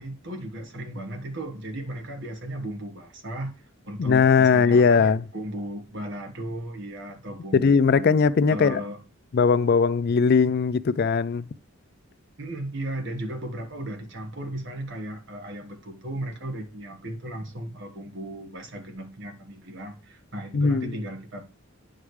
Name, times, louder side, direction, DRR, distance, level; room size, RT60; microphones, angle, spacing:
voice 1, 0.0-8.1 8.5-9.0 12.4-21.4, right 1 dB, 55° right, 1.5 m, -36 dB
voice 2, 4.0-5.2 7.5-8.8 9.3-11.5 20.5-20.9, left 5 dB, 45° left, 0.3 m, -19 dB
9.8 x 5.1 x 3.2 m
head